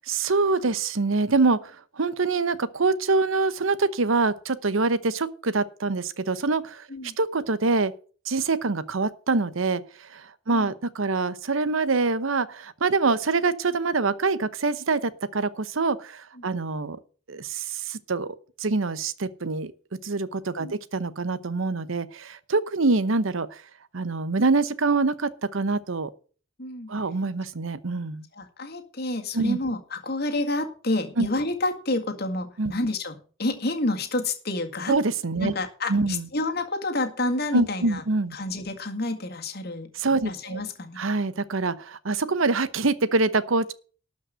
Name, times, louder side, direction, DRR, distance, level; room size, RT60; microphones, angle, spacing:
voice 1, 0.1-6.9 7.2-7.9 8.3-17.0 17.3-18.3 18.6-19.7 20.0-23.6 23.9-26.1 26.9-28.3 29.3-29.6 31.2-31.3 32.6-32.7 34.9-35.5 35.9-36.2 37.5-38.4 40.0-40.6 41.0-43.7, right 3 dB, 75° right, 0.9 m, -25 dB
voice 2, 26.6-26.9 28.3-35.0 35.4-38.0 38.3-39.9 40.2-41.0, left 2 dB, 50° left, 1.9 m, -29 dB
12.5 x 5.4 x 7.8 m
head